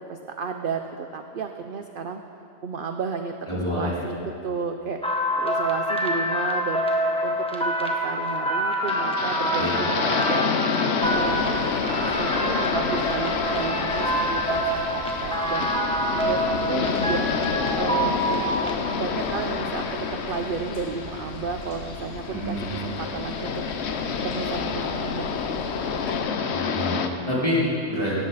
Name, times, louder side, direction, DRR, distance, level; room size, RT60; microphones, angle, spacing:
voice 1, 0.1-2.2 2.6-5.0 5.4-6.8 7.2-10.5 11.0-11.7 12.0-17.3 17.8-18.6 18.9-23.6 24.2-26.1, right 5 dB, 55° right, 6 dB, 0.7 m, -33 dB
voice 2, 3.5-4.1 9.6-9.8 22.3-22.6 26.5-28.2, left 1 dB, 25° left, -9 dB, 4.3 m, -27 dB
sound 1, 5.0-18.7, equal, 5° left, 1.2 m, -26 dB
sound 2, 8.9-27.1, left 6 dB, 60° left, 1.0 m, -28 dB
sound 3, 11.0-26.1, equal, 40° left, 2.8 m, -42 dB
17.5 x 14.0 x 4.1 m, 2.7 s
omnidirectional pair, 1.4 m